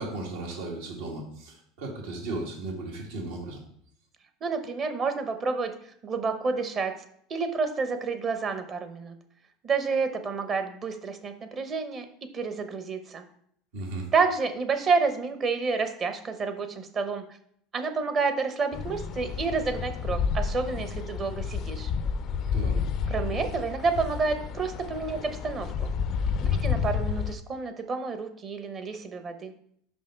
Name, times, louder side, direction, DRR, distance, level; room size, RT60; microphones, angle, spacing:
voice 1, 0.0-3.6 13.7-14.1 22.5-22.8, right 2 dB, 80° right, 0 dB, 2.0 m, -35 dB
voice 2, 4.4-5.7 6.0-6.9 7.3-9.1 9.6-12.1 12.3-13.2 14.1-17.2 17.7-21.9 23.1-25.9 26.4-29.5, right 4 dB, 35° right, 7 dB, 0.8 m, -29 dB
sound 1, 18.7-27.3, left 6 dB, 45° left, 0.4 m, -30 dB
5.5 x 5.2 x 4.5 m, 0.66 s
supercardioid pair, 120°, 0 cm